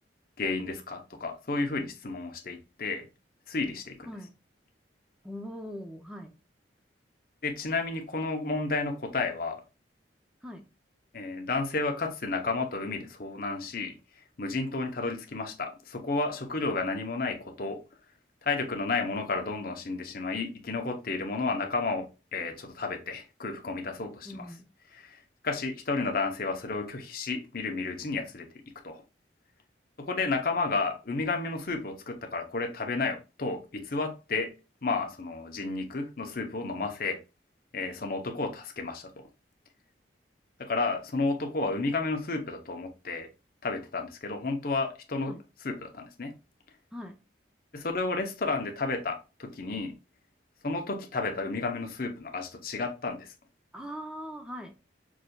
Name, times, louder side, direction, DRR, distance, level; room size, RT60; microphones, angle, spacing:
voice 1, 0.4-3.1 3.5-4.0 7.4-9.6 11.1-13.9 14.4-17.8 18.4-22.1 22.3-24.4 24.9-25.2 25.4-28.5 28.8-29.0 30.0-34.5 34.8-37.2 37.7-39.3 40.6-43.3 43.6-45.4 45.6-46.3 47.7-49.9 50.6-53.3, left 3 dB, 50° left, 0.8 m, -32 dB
voice 2, 4.0-4.3 5.2-6.3 10.4-10.6 24.2-24.7 36.8-36.9 45.3-45.4 46.9-47.2 53.7-54.7, equal, 5° right, 0.5 m, -41 dB
6.1 x 2.6 x 2.3 m
head